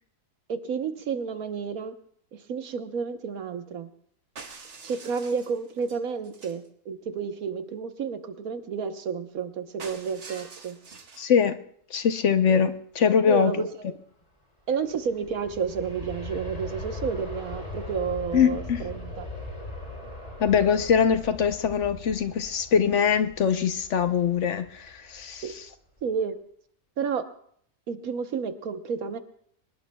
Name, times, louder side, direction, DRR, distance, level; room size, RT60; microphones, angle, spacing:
voice 1, 0.5-1.9 2.3-3.9 4.8-10.8 13.3-13.9 14.7-19.3 25.4-25.5 26.0-26.4 27.0-27.3 27.9-29.2, right 6 dB, 80° right, 8 dB, 1.5 m, -31 dB
sound 1, 4.4-6.7 9.8-11.3, right 4 dB, 55° right, 1.5 m, -45 dB
voice 2, 11.2-11.6 11.9-13.7 18.3-18.8 20.4-25.4, left 7 dB, 60° left, 9 dB, 1.0 m, -23 dB
Aircraft, 14.7-25.6 26.0-26.1, left 2 dB, 25° left, 2.5 m, -40 dB
24.5 x 20.5 x 2.3 m, 0.62 s
omnidirectional pair, 1.5 m